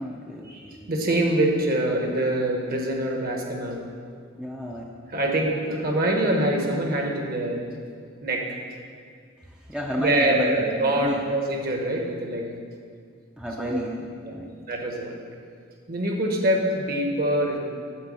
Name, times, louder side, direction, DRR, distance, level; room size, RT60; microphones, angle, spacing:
voice 1, 0.0-0.9 4.4-4.8 9.5-11.2 13.4-14.5, equal, 5° right, -1 dB, 0.5 m, -32 dB
voice 2, 0.5-3.8 5.1-7.6 8.2-8.5 10.0-12.5 13.6-13.8 14.2-14.3 14.7-15.1 15.9-17.6, right 1 dB, 45° right, 1 dB, 1.2 m, -24 dB
8.9 x 4.4 x 7.5 m, 2.1 s
head